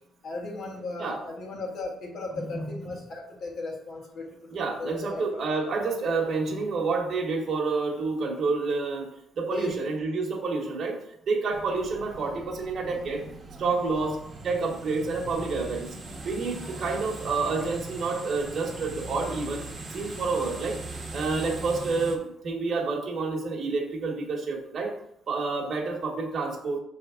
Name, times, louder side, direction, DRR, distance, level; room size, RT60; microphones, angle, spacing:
voice 1, 0.2-4.3 4.6-5.4 9.5-9.9 13.9-14.1, left 2 dB, 60° left, -1 dB, 1.8 m, -36 dB
voice 2, 2.3-2.7 4.5-9.1 9.4-13.2 13.6-14.2 14.4-15.9 16.2-19.6 19.9-20.8 21.1-24.9 25.3-26.8, right 4 dB, 45° right, 0 dB, 1.3 m, -29 dB
sound 1, 11.5-22.2, right 2 dB, 25° right, 1.2 m, -40 dB
6.5 x 3.5 x 5.0 m, 0.73 s
cardioid pair, 155°, 0 cm